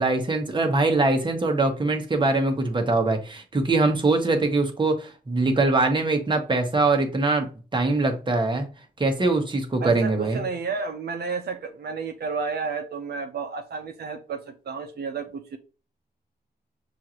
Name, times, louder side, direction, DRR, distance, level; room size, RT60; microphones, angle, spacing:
voice 1, 0.0-7.5 7.7-8.7 9.0-10.4, right 3 dB, 30° right, 1.0 m, -22 dB
voice 2, 9.8-15.6, right 5 dB, 80° right, 0.5 m, -31 dB
6.1 x 2.5 x 2.9 m
wide cardioid pair, 90°, 17 cm